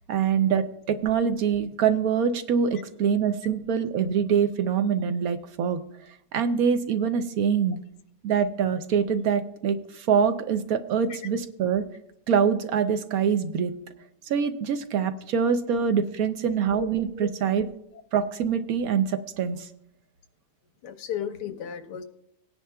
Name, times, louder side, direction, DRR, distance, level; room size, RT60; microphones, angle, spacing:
voice 1, 0.1-5.8 6.3-7.8 8.2-11.8 12.3-13.7 14.3-17.7 18.1-19.7, right 7 dB, 70° right, 9 dB, 1.0 m, -24 dB
voice 2, 20.8-22.0, left 9 dB, 80° left, 8 dB, 1.4 m, -33 dB
19.0 x 10.0 x 2.2 m, 0.75 s
omnidirectional pair, 1.8 m